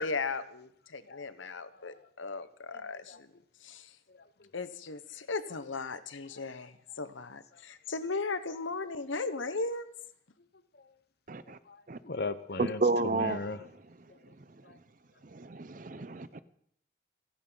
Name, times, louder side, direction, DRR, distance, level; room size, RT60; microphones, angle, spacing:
voice 1, 0.0-3.3 3.6-3.9 4.5-9.9, left 3 dB, 80° left, 1.0 m, -37 dB
voice 2, 2.7-3.2 4.1-4.5 10.7-10.9 11.5-13.6 14.1-14.3 14.6-14.8, left 3 dB, 55° left, 0.9 m, -40 dB
voice 3, 11.3-11.6 11.9-12.0 12.6-13.4 15.3-16.4, right 3 dB, 40° right, 0.6 m, -31 dB
29.0 x 10.5 x 4.0 m
head